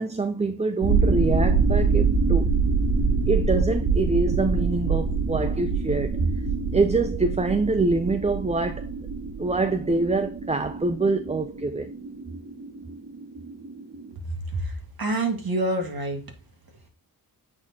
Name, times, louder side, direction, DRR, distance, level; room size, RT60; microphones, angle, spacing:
voice 1, 0.0-2.5 3.3-6.3 6.7-8.8 9.4-11.9, right 3 dB, 15° right, 0.4 m, -25 dB
sound 1, 0.8-14.1, right 4 dB, 75° right, 3.5 m, -25 dB
voice 2, 14.5-16.2, right 2 dB, 55° right, 1.9 m, -27 dB
8.6 x 4.2 x 2.8 m
cardioid pair, 50°, 43 cm